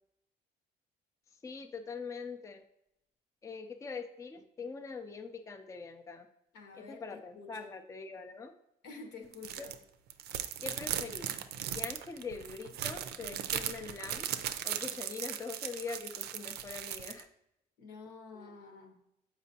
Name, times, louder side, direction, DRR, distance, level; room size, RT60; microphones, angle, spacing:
voice 1, 1.4-2.6 3.4-6.3 6.7-8.5 9.6-9.7 10.6-11.3 11.7-14.3 14.6-17.3 18.3-18.5, left 4 dB, 20° left, 6 dB, 0.4 m, -43 dB
voice 2, 6.5-7.8 8.8-9.7 17.8-19.0, left 4 dB, 80° left, 3 dB, 1.2 m, -49 dB
sound 1, 9.3-9.7 10.1-17.2, right 10 dB, 70° right, 0.5 m, -38 dB
7.2 x 5.0 x 2.7 m, 0.81 s
cardioid pair, 110°, 17 cm